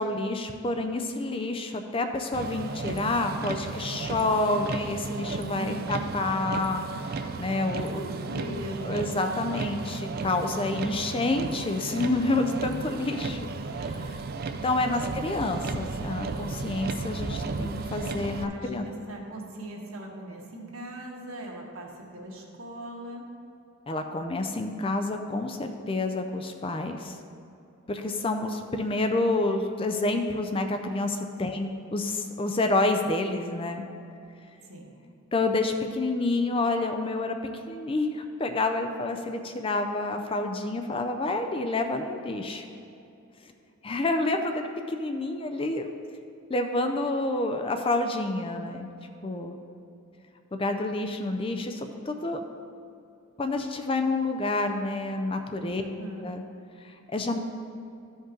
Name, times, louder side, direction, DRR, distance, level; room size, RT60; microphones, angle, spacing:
voice 1, 0.0-8.1 8.8-13.5 13.8-14.2 14.6-18.8 23.9-27.2 27.9-33.8 35.3-37.4 37.7-42.7 43.8-45.9 46.5-48.9 49.2-49.6 50.6-52.4 53.4-55.8 56.2-56.4 56.8-57.4, left 2 dB, 25° left, 6 dB, 0.4 m, -28 dB
Motor vehicle (road), 2.3-18.4, right 3 dB, 45° right, 0.4 m, -34 dB
voice 2, 5.5-6.0 7.7-9.1 15.0-15.3 18.4-23.3 31.5-31.6 34.7-34.9 55.8-56.3, equal, 70° right, -2 dB, 1.5 m, -40 dB
13.5 x 5.2 x 3.8 m, 2.7 s
head